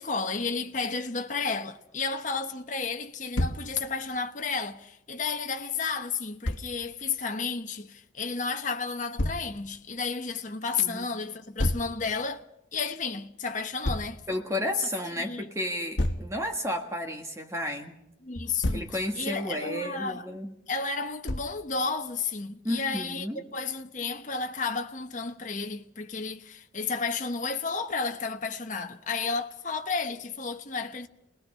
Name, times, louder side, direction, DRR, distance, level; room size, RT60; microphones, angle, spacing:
voice 1, 0.0-12.4 12.7-14.2 15.2-15.5 18.2-20.3 20.7-31.1, left 4 dB, 40° left, 1.1 m, -32 dB
Thump thud, 3.3-3.7 6.4-6.7 9.2-9.5 11.6-11.9 13.8-14.1 16.0-16.3 18.3-18.9 21.3-21.6, left 1 dB, 75° left, 1.3 m, -28 dB
voice 2, 14.3-18.0 18.7-20.5 22.6-23.4, left 1 dB, 15° right, 1.6 m, -32 dB
28.0 x 19.5 x 5.6 m
head